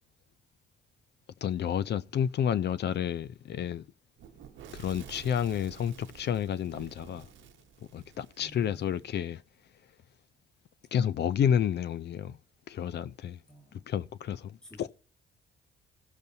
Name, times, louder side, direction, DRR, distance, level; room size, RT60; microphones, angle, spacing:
voice 1, 1.4-3.8 4.7-7.3 7.9-9.4 10.9-12.4 12.7-13.4 13.9-14.9, left 9 dB, 60° left, 0.6 m, -30 dB
Fire / Explosion, 4.2-9.0, right 9 dB, 75° right, 1.0 m, -50 dB
voice 2, 8.4-9.1 13.5-13.9 14.6-14.9, equal, 5° left, 2.1 m, -53 dB
18.0 x 6.6 x 2.7 m
cardioid pair, 90°, 20 cm